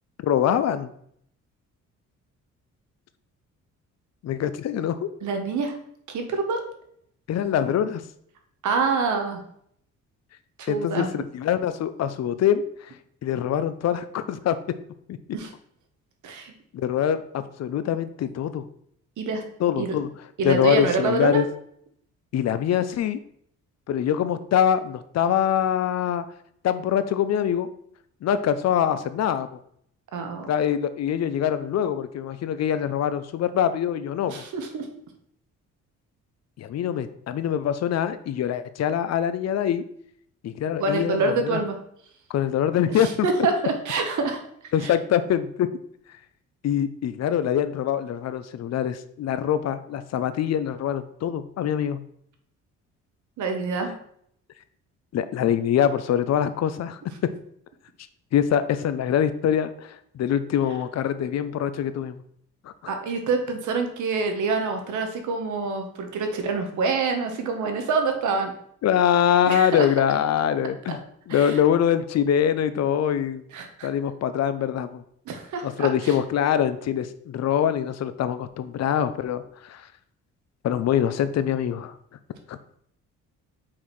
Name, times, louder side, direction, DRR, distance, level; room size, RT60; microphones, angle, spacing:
voice 1, 0.2-0.9 4.2-5.1 7.3-8.0 10.7-12.6 13.2-14.6 15.1-15.2 16.7-18.6 19.6-20.1 20.4-21.5 22.3-23.2 23.9-26.2 26.6-27.7 28.2-29.5 30.5-34.4 36.6-39.8 40.4-41.6 42.3-43.3 44.7-45.7 46.6-52.0 55.1-57.3 58.3-62.2 68.8-71.0 71.3-73.4 73.8-75.0 75.6-79.8 80.6-81.9 82.5-82.6, left 9 dB, 60° left, 12 dB, 0.6 m, -24 dB
voice 2, 5.2-5.7 6.1-6.6 8.6-9.4 10.6-11.1 15.3-15.5 16.2-16.5 19.2-19.4 19.8-20.0 20.4-21.4 30.1-30.5 34.3-34.9 40.8-41.8 42.9-44.4 44.8-44.9 53.4-53.9 62.9-68.5 69.4-69.9 71.3-71.6 73.5-73.9 75.3-76.2, right 4 dB, 75° right, 5 dB, 1.3 m, -26 dB
5.8 x 4.3 x 4.8 m, 0.68 s
cardioid pair, 90°, 30 cm